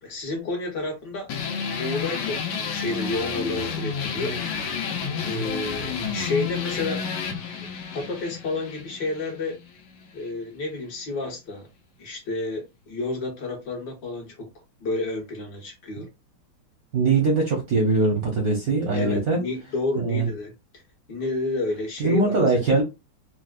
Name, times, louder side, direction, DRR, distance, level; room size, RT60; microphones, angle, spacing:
voice 1, 0.0-1.3 1.8-4.4 5.2-7.0 7.9-9.6 10.1-11.7 12.0-12.6 12.9-14.5 14.8-16.1 18.9-20.5 21.1-22.6, left 2 dB, 60° left, 1.6 m, -30 dB
sound 1, 1.3-10.3, left 6 dB, 85° left, 1.6 m, -30 dB
voice 2, 16.9-19.4 20.0-20.3 22.0-22.8, right 3 dB, 65° right, 0.9 m, -21 dB
4.3 x 2.1 x 2.4 m
omnidirectional pair, 2.3 m